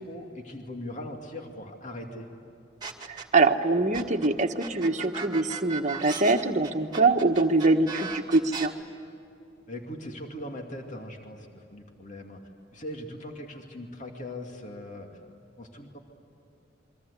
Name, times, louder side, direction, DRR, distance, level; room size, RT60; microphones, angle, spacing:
voice 1, 0.0-2.4 9.7-12.4 12.7-15.1 15.6-16.0, left 1 dB, 40° left, 2 dB, 2.5 m, -40 dB
sound 1, 2.8-3.5 3.9-8.7, right 5 dB, 20° right, 2.4 m, -37 dB
voice 2, 3.1-8.7, right 3 dB, 40° right, 5 dB, 1.4 m, -24 dB
28.5 x 24.0 x 8.4 m, 2.8 s
head